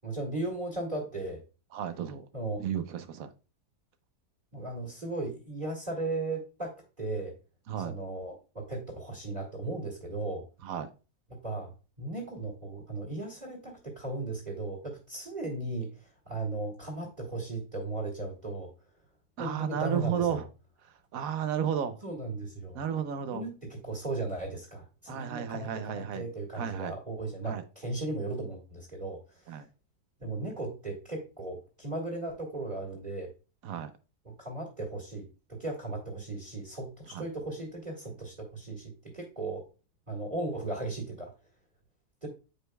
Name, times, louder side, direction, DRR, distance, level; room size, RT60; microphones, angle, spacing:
voice 1, 0.0-1.4 2.3-2.7 4.5-7.4 7.8-10.5 11.4-11.7 12.0-18.7 19.4-20.4 22.0-22.8 23.3-29.6 30.2-33.3 34.3-39.6 40.1-41.3 42.2-42.3, right 2 dB, 25° right, 2.0 m, -36 dB
voice 2, 1.7-2.3 2.6-3.3 7.7-8.0 10.6-10.9 19.4-20.5 21.1-22.0 22.7-23.4 25.1-26.2 26.6-26.9 27.5-27.6 29.5-29.7 33.6-33.9 37.1-37.3, right 8 dB, 65° right, 1.1 m, -33 dB
8.6 x 5.0 x 2.3 m
omnidirectional pair, 1.7 m